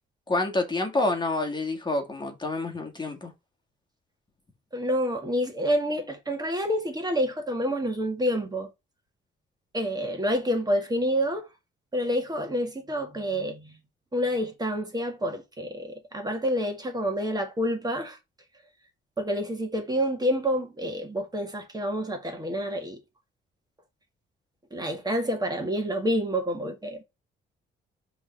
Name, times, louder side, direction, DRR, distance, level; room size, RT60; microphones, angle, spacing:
voice 1, 0.3-3.3, left 2 dB, 20° left, 1.7 m, -28 dB
voice 2, 4.7-8.7 9.7-11.5 11.9-13.8 14.1-18.2 19.2-23.0 24.7-27.0, equal, 20° right, 1.9 m, -28 dB
5.3 x 3.5 x 5.2 m
cardioid pair, 90°, 20 cm